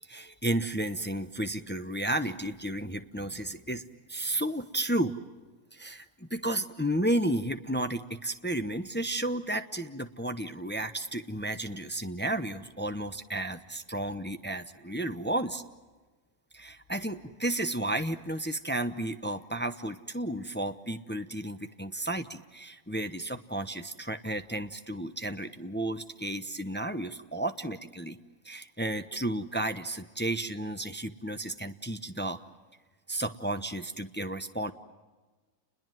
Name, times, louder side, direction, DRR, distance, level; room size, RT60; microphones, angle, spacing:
voice 1, 0.1-3.8 4.1-5.2 5.7-15.6 16.5-28.2 28.4-32.4 33.1-34.7, right 1 dB, 10° left, 8 dB, 0.5 m, -32 dB
29.5 x 21.5 x 7.7 m, 1.3 s
omnidirectional pair, 1.7 m